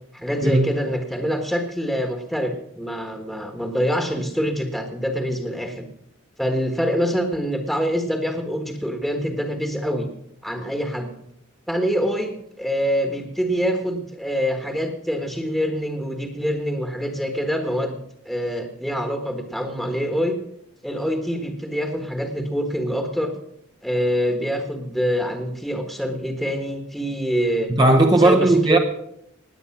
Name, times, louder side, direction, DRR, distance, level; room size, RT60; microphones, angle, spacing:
voice 1, 0.1-5.8 6.4-10.1 10.4-11.1 11.7-18.0 18.2-20.4 20.8-23.3 23.8-27.7 28.2-28.8, equal, ahead, 1.4 m, -25 dB
voice 2, 27.8-28.8, right 2 dB, 20° right, 0.9 m, -16 dB
18.5 x 8.7 x 5.9 m
head